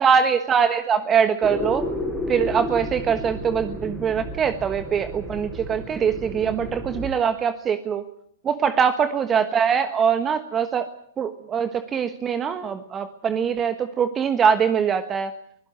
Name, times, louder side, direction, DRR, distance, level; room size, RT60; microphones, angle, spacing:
voice 1, 0.0-1.9 2.3-8.1 8.4-10.9 11.2-15.3, right 7 dB, 25° right, 10 dB, 1.3 m, -22 dB
sound 1, 1.4-7.1, left 1 dB, ahead, 5.0 m, -32 dB
24.0 x 17.0 x 9.3 m, 0.69 s
hypercardioid pair, 115°, 0 cm